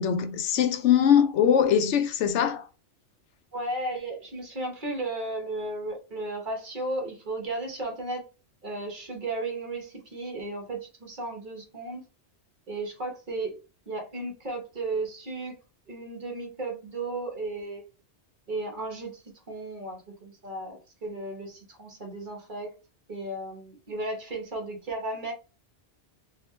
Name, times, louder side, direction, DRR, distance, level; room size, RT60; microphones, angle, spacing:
voice 1, 0.0-2.7, left 8 dB, 90° left, 0.9 m, -22 dB
voice 2, 3.5-8.2 8.6-12.0 12.7-13.6 13.9-15.5 15.9-17.9 18.5-22.7 23.1-25.3, right 2 dB, 45° right, 1.1 m, -34 dB
4.0 x 2.3 x 3.1 m
omnidirectional pair, 1.2 m